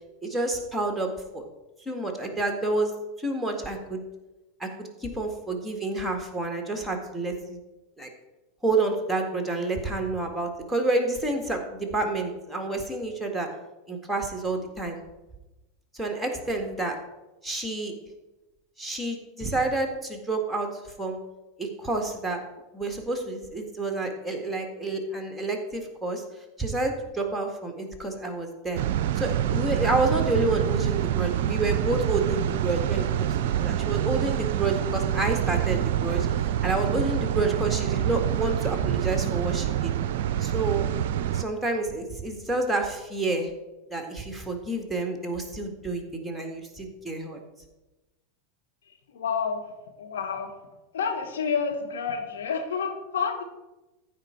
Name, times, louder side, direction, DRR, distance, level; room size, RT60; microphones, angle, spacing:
voice 1, 0.2-1.4 1.8-4.0 4.6-7.6 8.0-8.1 8.6-13.5 13.9-15.0 15.9-17.0 17.4-17.9 18.8-20.7 21.0-21.2 21.6-22.4 22.7-26.2 26.6-28.8 29.2-36.3 36.6-39.9 40.4-40.9 41.3-43.5 43.9-47.4, right 2 dB, ahead, 3 dB, 1.9 m, -29 dB
sound 1, 28.7-41.4, right 11 dB, 60° right, 0.4 m, -26 dB
voice 2, 48.9-50.5 50.9-53.4, left 6 dB, 70° left, 3 dB, 1.7 m, -29 dB
14.5 x 4.9 x 4.6 m, 1.1 s
hypercardioid pair, 90°, 0 cm